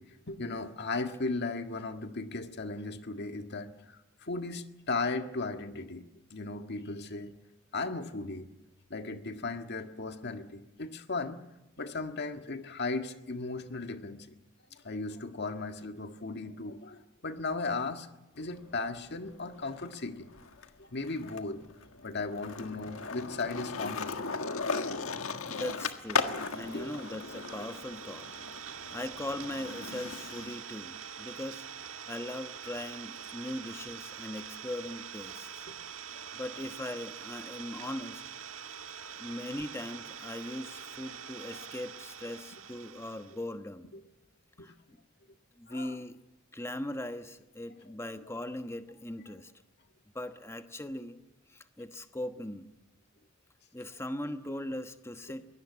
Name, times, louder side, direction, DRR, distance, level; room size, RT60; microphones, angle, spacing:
voice 1, 0.0-7.3 7.7-8.5 8.9-11.4 11.8-14.3 14.7-18.1 18.4-21.6 22.0-24.2 26.3-27.0 28.6-28.7 35.7-35.8 36.1-36.3 41.5-41.6 43.9-44.0 44.6-44.7 45.7-46.0, left 3 dB, 55° left, 7 dB, 1.7 m, -37 dB
Skateboard, 18.4-20.0 20.3-30.5, left 4 dB, 80° left, 1.6 m, -37 dB
voice 2, 25.4-28.3 28.6-31.7 32.1-35.7 36.3-38.2 39.2-43.9 44.6-45.0 45.6-46.2 46.5-49.5 50.1-51.2 51.5-52.7 53.7-55.5, left 1 dB, 15° left, 8 dB, 1.2 m, -40 dB
Idling, 25.7-43.5, right 7 dB, 75° right, 1.6 m, -45 dB
23.0 x 18.0 x 8.5 m, 0.99 s
head